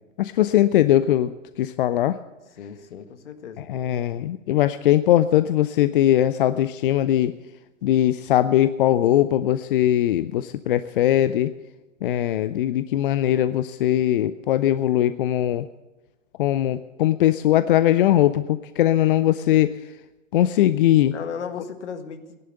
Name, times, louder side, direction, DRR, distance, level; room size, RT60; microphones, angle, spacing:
voice 1, 0.2-1.3 1.6-2.2 3.7-7.3 7.8-11.5 12.0-15.7 16.4-19.7 20.3-21.1, left 12 dB, 45° left, 13 dB, 0.5 m, -20 dB
voice 2, 2.6-3.7 21.1-22.4, left 6 dB, 65° left, 8 dB, 1.8 m, -35 dB
17.0 x 11.0 x 6.7 m, 1.2 s
figure-of-eight pair, 110°, 39 cm